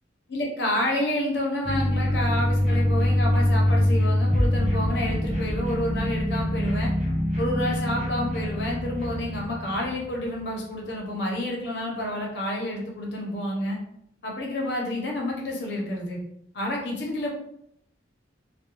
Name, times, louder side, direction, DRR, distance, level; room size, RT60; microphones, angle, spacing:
voice 1, 0.3-6.9 7.4-13.8 14.2-16.2 16.5-17.3, left 1 dB, 65° left, -2 dB, 0.7 m, -29 dB
sound 1, 1.6-10.0, left 1 dB, 40° right, 0.6 m, -24 dB
2.3 x 2.2 x 2.9 m, 0.73 s
head